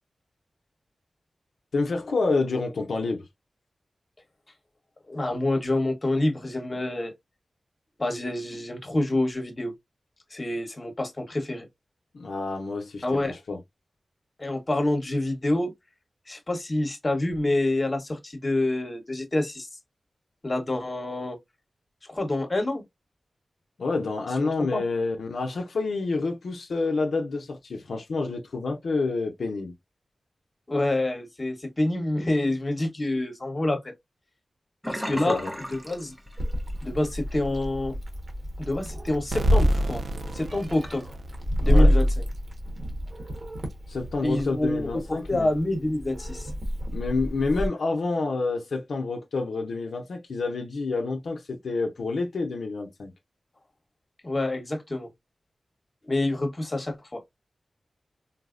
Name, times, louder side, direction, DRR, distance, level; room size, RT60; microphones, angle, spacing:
voice 1, 1.7-3.2 12.1-13.6 23.8-29.7 35.3-35.5 41.6-41.9 43.9-45.5 46.9-53.1, left 3 dB, 90° left, 0.6 m, -28 dB
voice 2, 5.1-7.1 8.0-9.7 10.3-11.7 13.0-13.4 14.4-15.7 16.3-19.7 20.4-21.4 22.1-22.8 24.4-24.8 30.7-33.9 34.9-35.4 35.7-36.1 36.8-37.9 38.6-40.0 40.3-41.1 41.6-42.1 44.2-46.5 54.2-55.1 56.1-57.2, left 1 dB, 30° left, 1.0 m, -27 dB
Sink (filling or washing), 34.8-36.8 37.1-37.4 37.8-37.9, equal, 5° right, 0.6 m, -34 dB
Meow, 36.4-47.7, equal, 50° right, 1.1 m, -27 dB
sound 1, 39.3-42.0, right 2 dB, 65° right, 0.3 m, -34 dB
3.9 x 2.0 x 2.4 m
wide cardioid pair, 95°, 0 cm